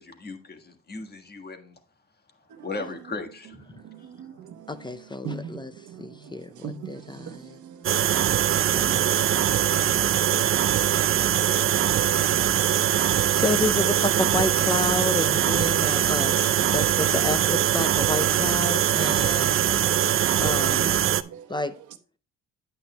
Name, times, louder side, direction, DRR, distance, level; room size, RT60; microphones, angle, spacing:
voice 1, 0.0-1.8 2.6-3.6, left 3 dB, 30° left, 1.5 m, -37 dB
voice 2, 3.7-13.2 15.5-15.8 20.8-21.6, right 7 dB, 75° right, 1.0 m, -42 dB
voice 3, 4.7-5.7 6.0-7.6 8.7-9.2 11.8-11.9 12.9-16.4 16.7-19.8 20.4-20.9 21.5-21.8, left 2 dB, 15° left, 0.5 m, -30 dB
sound 1, 7.8-21.2, right 10 dB, 45° right, 0.5 m, -22 dB
8.8 x 8.7 x 2.2 m
cardioid pair, 90°, 30 cm